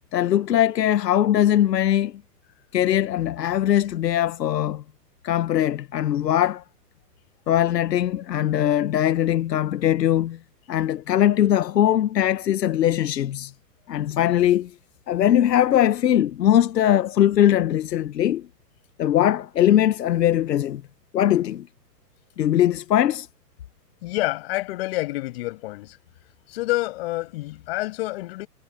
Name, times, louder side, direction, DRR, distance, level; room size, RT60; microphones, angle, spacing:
voice 1, 0.1-2.1 2.7-4.8 5.2-6.6 7.5-10.4 10.7-13.5 13.9-14.7 15.1-18.5 19.0-20.8 21.1-21.7 22.4-23.3, left 11 dB, 85° left, 1.1 m, -21 dB
voice 2, 24.0-26.0 26.5-28.5, left 19 dB, 40° left, 7.5 m, -28 dB
hypercardioid pair, 165°, 48 cm